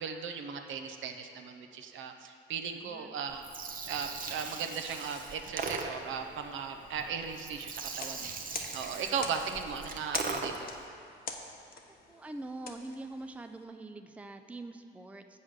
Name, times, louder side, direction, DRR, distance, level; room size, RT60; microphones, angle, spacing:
voice 1, 0.0-3.5 3.9-8.3 8.7-10.7, right 6 dB, 75° right, 5 dB, 0.8 m, -37 dB
voice 2, 2.6-3.1 12.1-15.4, right 2 dB, 5° right, 7 dB, 0.4 m, -44 dB
Gurgling, 3.3-10.8, right 4 dB, 45° right, 0.8 m, -40 dB
sound 1, 7.9-13.6, left 4 dB, 45° left, 0.9 m, -44 dB
7.8 x 5.5 x 6.4 m, 2.5 s
cardioid pair, 90°, 20 cm